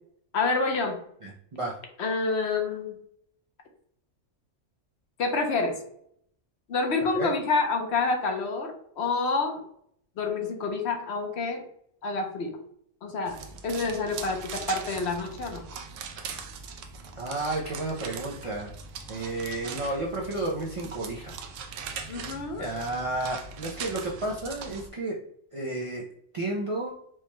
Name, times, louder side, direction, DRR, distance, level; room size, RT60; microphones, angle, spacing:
voice 1, 0.3-1.0 2.0-3.0 5.2-5.8 6.7-9.6 10.2-11.6 12.0-12.6 13.0-13.4 13.6-15.6 22.1-22.7, left 3 dB, 60° left, 4 dB, 0.9 m, -28 dB
voice 2, 1.2-1.8 7.1-7.3 17.2-18.7 19.1-21.4 22.6-25.2 25.5-26.0 26.3-27.0, right 2 dB, 55° right, -3 dB, 0.3 m, -32 dB
sound 1, 13.3-24.9, right 5 dB, 75° right, 0.9 m, -40 dB
4.7 x 2.2 x 3.0 m, 0.68 s
omnidirectional pair, 1.4 m